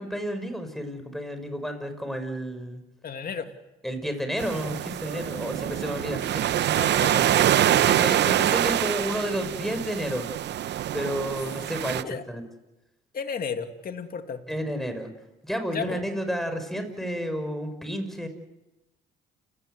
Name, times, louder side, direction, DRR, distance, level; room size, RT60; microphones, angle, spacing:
voice 1, 0.0-2.8 3.8-6.4 7.9-10.2 10.9-12.4 14.5-15.1 15.4-18.3, equal, ahead, 7 dB, 6.1 m, -31 dB
voice 2, 3.0-3.5 6.1-6.5 6.7-7.9 12.0-12.2 13.1-14.4 15.7-16.0, left 6 dB, 50° left, 6 dB, 2.4 m, -34 dB
sound 1, 4.4-12.0, right 11 dB, 60° right, 0.8 m, -25 dB
29.5 x 17.5 x 8.1 m, 1.0 s
cardioid pair, 85°, 20 cm